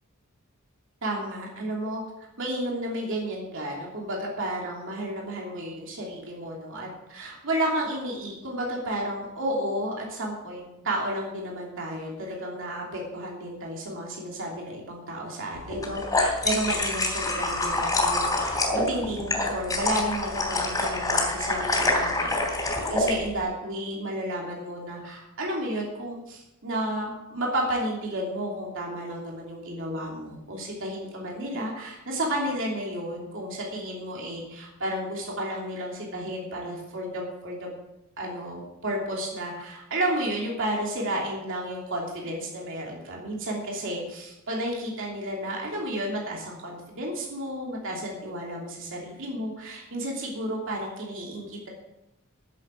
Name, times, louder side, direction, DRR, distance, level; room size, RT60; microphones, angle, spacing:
voice 1, 1.0-2.0 2.4-37.7 38.2-51.7, right 1 dB, 65° right, -2 dB, 3.0 m, -32 dB
sound 1, 15.7-23.1, left 2 dB, 15° left, 2.9 m, -26 dB
11.5 x 7.6 x 7.1 m, 0.93 s
head